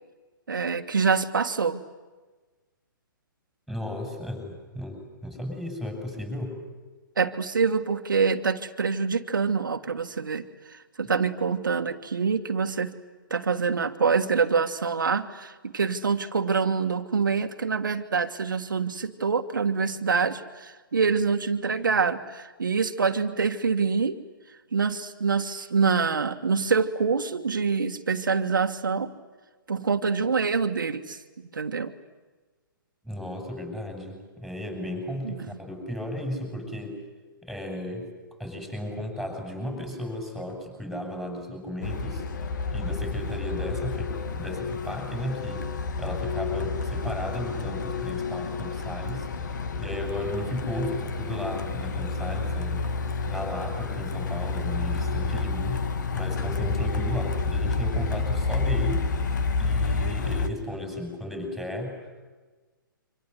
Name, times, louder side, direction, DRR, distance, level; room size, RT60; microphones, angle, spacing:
voice 1, 0.5-1.8 7.2-12.9 13.3-24.2 24.7-29.1 29.7-31.9 35.2-35.4, right 5 dB, 65° right, 6 dB, 1.6 m, -26 dB
voice 2, 3.7-6.6 33.0-37.0 37.4-42.2 42.7-45.6 46.0-52.8 53.3-55.8 56.1-59.0 59.6-62.1, left 1 dB, ahead, 3 dB, 7.2 m, -34 dB
Truck, 41.8-60.5, left 4 dB, 55° left, 2.2 m, -29 dB
28.0 x 26.0 x 8.2 m, 1.3 s
figure-of-eight pair, 125°, 12 cm